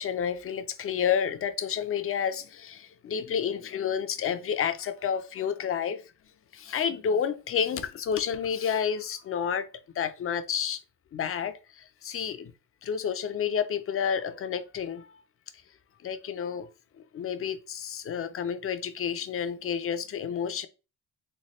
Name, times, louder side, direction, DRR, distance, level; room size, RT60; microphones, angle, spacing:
voice 1, 0.0-6.0 6.5-9.7 9.9-10.8 11.1-12.5 12.8-15.2 16.0-16.7 17.1-20.7, left 7 dB, 40° left, 0.5 m, -30 dB
3.2 x 2.3 x 4.2 m
cardioid pair, 105°, 35 cm